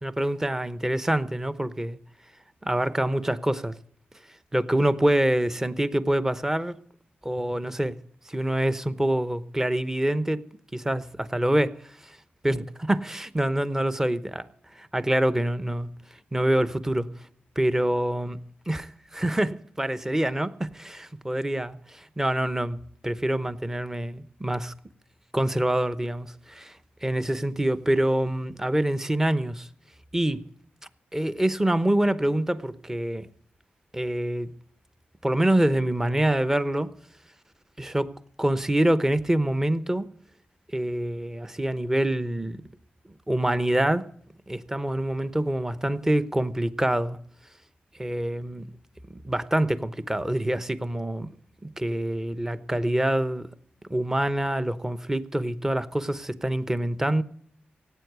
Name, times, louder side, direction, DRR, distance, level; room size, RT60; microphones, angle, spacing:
voice 1, 0.0-2.0 2.6-3.7 4.5-6.8 7.2-8.0 8.3-10.4 10.7-12.2 12.4-14.5 14.8-15.9 16.3-17.1 17.6-18.4 18.7-18.9 19.1-22.8 23.0-24.7 25.3-29.7 30.1-30.4 31.1-33.3 33.9-34.5 35.2-36.9 37.8-38.1 38.4-40.1 40.7-42.6 43.3-44.1 44.5-47.2 48.0-48.7 49.1-51.3 51.6-53.5 53.9-57.2, right 1 dB, 10° right, 0.9 m, -26 dB
17.0 x 8.8 x 8.1 m
cardioid pair, 90°, 4 cm